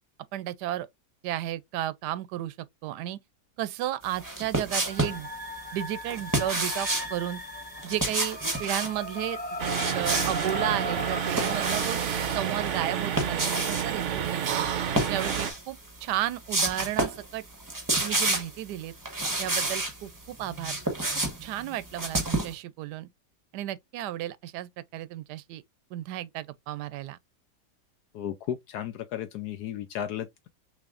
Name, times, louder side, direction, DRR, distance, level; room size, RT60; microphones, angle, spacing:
voice 1, 0.3-0.9 1.2-2.5 2.8-3.2 3.6-5.3 5.7-7.4 7.8-9.4 9.9-12.0 12.3-14.7 15.1-17.4 18.0-18.9 19.4-20.8 21.4-23.1 23.5-25.6 25.9-27.2, right 13 dB, 80° right, 1.1 m, -33 dB
sound 1, 4.2-5.2 6.1-7.1 7.8-8.9 9.6-10.5 11.0-12.1 12.9-13.9 14.9-15.6 16.0-16.1 16.5-17.2 17.5-18.6 19.0-19.9 20.4-22.5, right 2 dB, 15° right, 0.8 m, -29 dB
sound 2, 4.9-13.0, left 1 dB, 15° left, 0.4 m, -38 dB
sound 3, 9.6-15.5, right 8 dB, 60° right, 0.8 m, -30 dB
voice 2, 28.1-30.5, left 10 dB, 75° left, 1.1 m, -34 dB
6.2 x 3.0 x 2.4 m
omnidirectional pair, 1.8 m